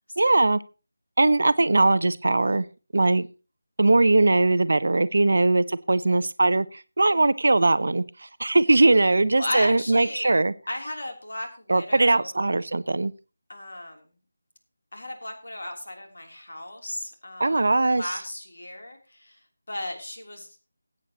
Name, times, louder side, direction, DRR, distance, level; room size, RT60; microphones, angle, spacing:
voice 1, 0.2-0.6 1.2-2.7 2.9-3.3 3.8-10.5 11.7-13.1 17.4-18.0, right 2 dB, 55° right, 16 dB, 0.6 m, -20 dB
voice 2, 9.4-10.3 10.7-12.3 13.5-14.1 14.9-20.6, left 1 dB, 60° left, 3 dB, 3.2 m, -35 dB
20.0 x 8.6 x 2.9 m, 0.33 s
figure-of-eight pair, 160°, 0 cm